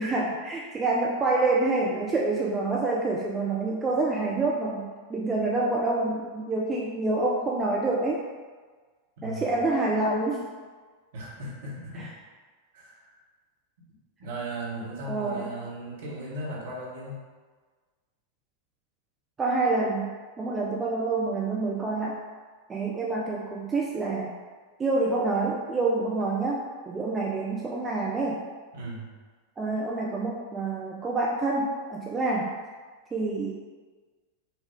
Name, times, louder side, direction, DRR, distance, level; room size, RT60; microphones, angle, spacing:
voice 1, 0.0-8.2 9.2-10.5 11.9-12.1 15.1-15.5 19.4-20.1 20.4-22.2 22.7-24.4 24.8-28.4 29.6-32.6 33.1-33.5, right 3 dB, 20° right, -3 dB, 0.4 m, -27 dB
voice 2, 9.2-9.5 11.1-12.1 12.7-13.2 14.2-17.2 28.7-29.1, right 1 dB, 55° right, -5 dB, 1.1 m, -37 dB
4.2 x 2.3 x 3.5 m, 1.4 s
figure-of-eight pair, 90°, 0 cm